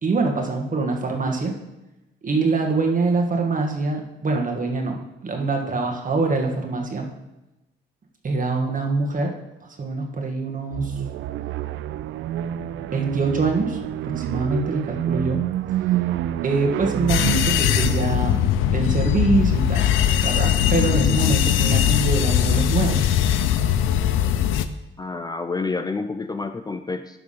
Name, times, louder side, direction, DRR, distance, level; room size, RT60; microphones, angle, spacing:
voice 1, 0.0-1.5 2.2-7.1 8.2-9.3 9.8-10.9 12.9-15.4 16.4-19.9 20.2-23.1, right 3 dB, 40° right, 2 dB, 1.8 m, -24 dB
sound 1, 10.7-18.4, right 12 dB, 75° right, 0.4 m, -28 dB
sound 2, 17.1-24.7, left 10 dB, 90° left, 0.5 m, -20 dB
voice 2, 25.0-27.2, left 3 dB, 20° left, 8 dB, 0.5 m, -29 dB
11.5 x 3.9 x 5.7 m, 0.98 s
cardioid pair, 90°, 20 cm